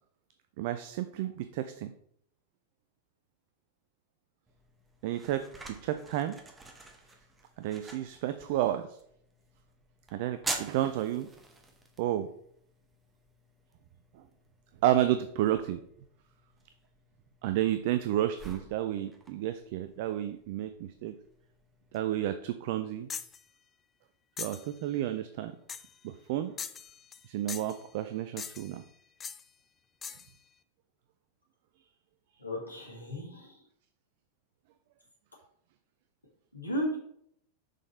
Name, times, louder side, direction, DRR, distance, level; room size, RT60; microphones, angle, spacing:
voice 1, 0.6-1.9 5.0-6.3 7.6-9.0 10.1-11.3 12.0-12.3 14.1-14.3 14.8-15.8 17.4-21.1 21.9-23.1 24.4-25.5 26.0-26.5 27.3-28.8, right 12 dB, 50° right, 10 dB, 0.3 m, -31 dB
sound 1, 4.5-22.0, right 2 dB, 15° right, 0.9 m, -47 dB
sound 2, 23.1-23.4 24.4-24.7 25.7-26.0 26.6-27.2 27.5-27.8 28.4-28.8 29.2-29.4 30.0-30.3, left 7 dB, 20° left, 0.4 m, -41 dB
voice 2, 32.4-33.5 36.5-37.0, equal, 85° left, -2 dB, 1.7 m, -34 dB
6.3 x 3.9 x 4.2 m, 0.69 s
figure-of-eight pair, 90°, 0 cm